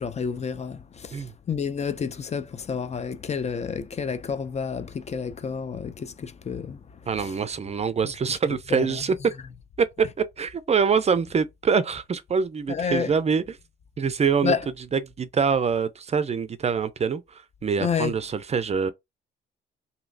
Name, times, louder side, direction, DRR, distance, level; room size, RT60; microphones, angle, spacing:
voice 1, 0.0-6.8 7.2-7.3 8.7-9.0 12.7-13.1 14.4-14.7 17.8-18.1, left 6 dB, 35° left, 0.5 m, -29 dB
voice 2, 7.1-9.2 10.4-13.6 14.0-14.6 14.9-17.2 17.6-18.9, right 6 dB, 35° right, 0.4 m, -25 dB
3.0 x 2.7 x 2.6 m
cardioid pair, 90°, 20 cm